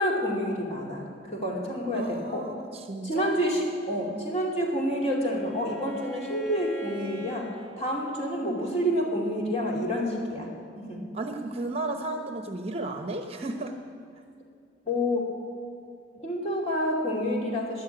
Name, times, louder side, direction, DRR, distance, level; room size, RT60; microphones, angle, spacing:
voice 1, 0.0-2.5 3.0-7.5 7.8-11.1 14.8-15.4 16.1-17.8, equal, 35° left, -2 dB, 2.8 m, -28 dB
voice 2, 1.9-3.4 11.1-13.8, right 2 dB, 30° right, 5 dB, 0.9 m, -34 dB
Bowed string instrument, 4.3-7.5, left 1 dB, 60° left, 4.5 m, -43 dB
13.5 x 10.5 x 9.0 m, 2.2 s
head